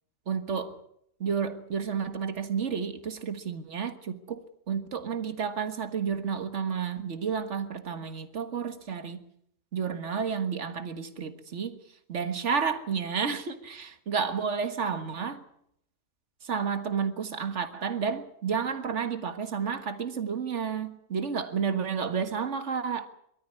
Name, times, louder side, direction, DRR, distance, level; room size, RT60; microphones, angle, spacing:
voice 1, 0.3-0.8 1.2-9.2 9.7-11.8 12.1-15.4 16.4-23.1, right 6 dB, 55° right, 1.9 m, -31 dB
22.5 x 13.5 x 9.7 m
omnidirectional pair, 1.5 m